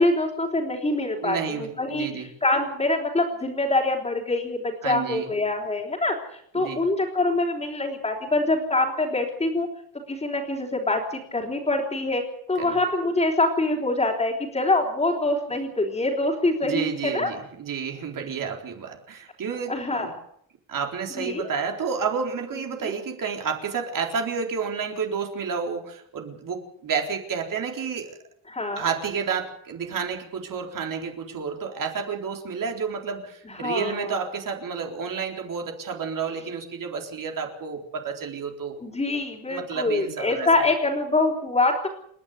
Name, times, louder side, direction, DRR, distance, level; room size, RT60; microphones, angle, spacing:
voice 1, 0.0-9.7 10.1-12.2 12.5-17.3 19.7-20.1 21.2-21.5 22.8-23.0 28.5-28.9 33.5-34.1 38.8-41.9, left 2 dB, 15° left, -4 dB, 4.0 m, -25 dB
voice 2, 1.2-2.3 4.8-5.3 6.5-6.8 12.6-12.8 16.6-20.1 20.7-28.2 28.8-38.8 39.5-40.5, right 6 dB, 45° right, 3 dB, 4.0 m, -30 dB
29.0 x 11.5 x 9.6 m, 0.68 s
cardioid pair, 180°, 44 cm